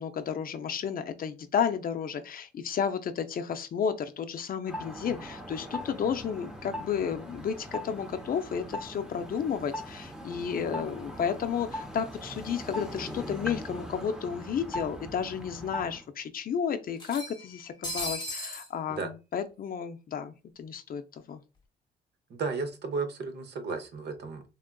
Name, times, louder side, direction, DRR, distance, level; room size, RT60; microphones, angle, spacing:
voice 1, 0.0-21.4, left 7 dB, 45° left, 0.4 m, -32 dB
sound 1, 4.7-16.0, equal, 5° right, 0.7 m, -40 dB
sound 2, 13.6-13.7 14.0-14.1 15.1-15.2 15.6-15.7 17.0-18.7, left 1 dB, 20° left, 1.0 m, -37 dB
voice 2, 22.3-24.4, right 4 dB, 60° right, 0.8 m, -34 dB
3.5 x 2.4 x 2.2 m
cardioid pair, 90°, 20 cm